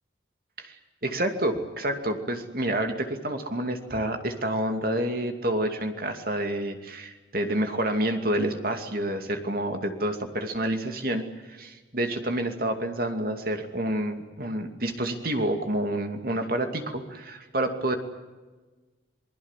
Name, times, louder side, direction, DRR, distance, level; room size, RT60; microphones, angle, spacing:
voice 1, 0.6-18.0, right 1 dB, 50° right, 6 dB, 2.6 m, -28 dB
28.0 x 20.5 x 7.5 m, 1.3 s
head